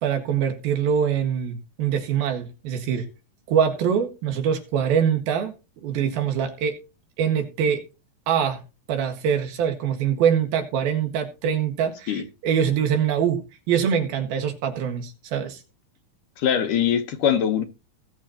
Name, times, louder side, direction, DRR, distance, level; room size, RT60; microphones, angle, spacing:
voice 1, 0.0-3.1 3.5-5.5 5.8-6.8 7.2-7.8 8.3-8.6 8.9-15.6, right 8 dB, 90° right, 3.6 m, -24 dB
voice 2, 16.4-17.6, left 9 dB, 70° left, 2.6 m, -22 dB
19.0 x 7.2 x 2.9 m
omnidirectional pair, 4.1 m